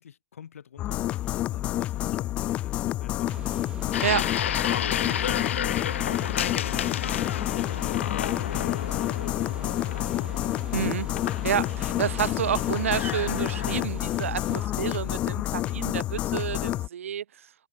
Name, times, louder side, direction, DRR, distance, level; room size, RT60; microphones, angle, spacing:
voice 1, 0.0-3.5 4.1-4.5 5.0-7.4 8.0-10.4, left 8 dB, 80° left, 4.4 m, -47 dB
sound 1, 0.8-16.9, left 14 dB, 15° left, 0.6 m, -29 dB
sound 2, 3.2-14.7, right 8 dB, 10° right, 3.6 m, -45 dB
sound 3, 3.9-13.9, left 10 dB, 60° left, 1.0 m, -32 dB
voice 2, 10.7-11.1 11.4-17.2, right 9 dB, 70° right, 1.1 m, -29 dB
hypercardioid pair, 175°, 8 cm